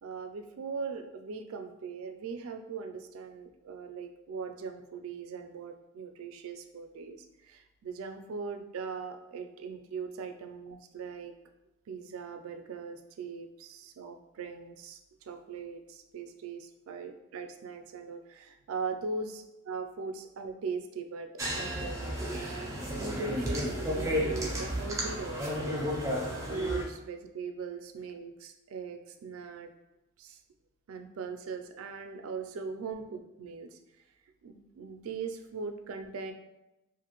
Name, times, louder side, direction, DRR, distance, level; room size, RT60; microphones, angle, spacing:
voice 1, 0.0-11.3 11.9-15.0 15.3-19.3 19.7-26.1 26.5-29.7 30.2-30.4 30.9-33.8 34.4-36.3, right 5 dB, 90° right, 6 dB, 0.3 m, -40 dB
sound 1, 21.4-26.8, equal, 15° right, 0.4 m, -32 dB
2.6 x 2.4 x 2.9 m, 0.97 s
head